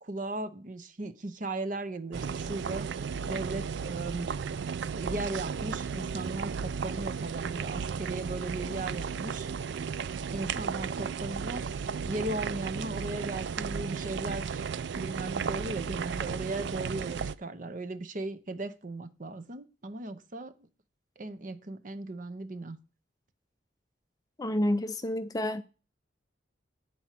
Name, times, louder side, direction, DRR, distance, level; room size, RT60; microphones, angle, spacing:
voice 1, 0.0-4.3 4.9-9.5 10.3-14.6 14.9-20.5 21.2-22.8, right 2 dB, 40° right, 0.7 m, -37 dB
sound 1, 2.1-17.3, right 6 dB, 65° right, 0.4 m, -34 dB
voice 2, 24.4-25.6, left 1 dB, 20° left, 0.4 m, -29 dB
9.5 x 4.3 x 7.4 m
head